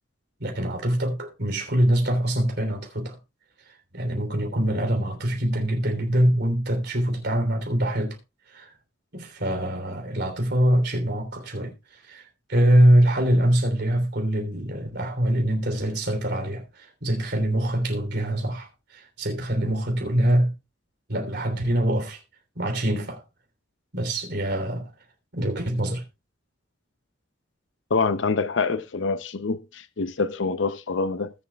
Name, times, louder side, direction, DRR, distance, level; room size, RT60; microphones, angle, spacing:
voice 1, 0.4-3.2 3.9-8.2 8.5-8.7 9.1-11.7 12.1-12.2 12.5-20.5 21.1-22.2 22.5-23.2 23.9-24.9 25.3-26.0, right 1 dB, 65° right, 3.3 m, -24 dB
voice 2, 27.9-31.3, left 4 dB, 75° left, 0.6 m, -26 dB
20.0 x 7.2 x 2.3 m
head